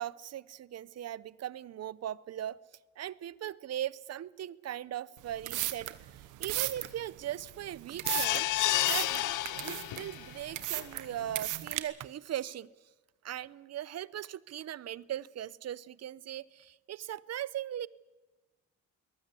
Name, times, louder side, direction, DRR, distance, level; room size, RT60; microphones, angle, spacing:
voice 1, 0.0-2.6 3.0-8.5 8.9-12.7 13.2-17.9, right 11 dB, 55° right, 20 dB, 0.8 m, -39 dB
sound 1, 5.2-11.8, right 15 dB, 85° right, 1.2 m, -36 dB
sound 2, 8.0-10.3 10.8-10.9 11.2-11.3, left 15 dB, 85° left, 0.7 m, -30 dB
22.0 x 19.5 x 8.3 m, 1.2 s
cardioid pair, 90°, 30 cm